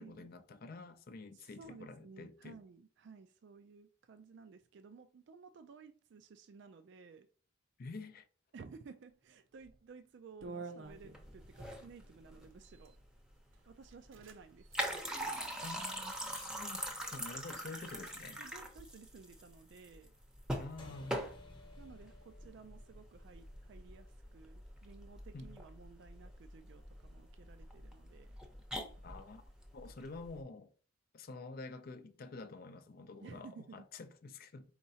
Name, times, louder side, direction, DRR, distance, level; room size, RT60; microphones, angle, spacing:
voice 1, 0.0-2.6 7.8-8.3 15.6-18.4 20.6-21.2 25.3-25.6 29.0-29.4 29.7-30.7 31.1-34.7, left 3 dB, 50° left, 0.4 m, -48 dB
voice 2, 1.3-7.3 8.5-13.0 13.7-15.2 18.4-20.1 21.8-28.4 33.2-33.9, right 5 dB, 60° right, 0.4 m, -55 dB
sound 1, 9.6-9.8 10.4-11.5 12.5-13.0 13.5-13.6 13.9-14.4 14.6-14.8 15.3-16.0, right 4 dB, 85° right, 0.7 m, -49 dB
sound 2, 10.9-30.4, equal, 5° right, 0.7 m, -44 dB
sound 3, 20.8-25.6, left 2 dB, 25° left, 0.9 m, -58 dB
4.6 x 4.2 x 2.7 m
head